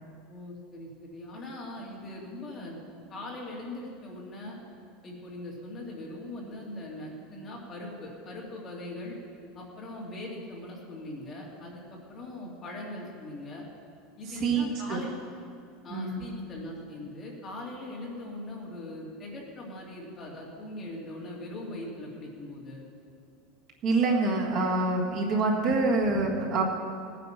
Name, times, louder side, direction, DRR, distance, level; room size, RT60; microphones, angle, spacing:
voice 1, 0.3-2.8 3.1-4.6 5.0-9.2 9.5-13.6 14.2-15.1 15.8-22.8, left 1 dB, 20° left, -3 dB, 2.3 m, -40 dB
voice 2, 14.3-15.0 15.9-16.2 23.8-26.6, right 3 dB, 35° right, -1 dB, 1.7 m, -26 dB
18.0 x 9.4 x 5.8 m, 2.3 s
supercardioid pair, 180°, 0 cm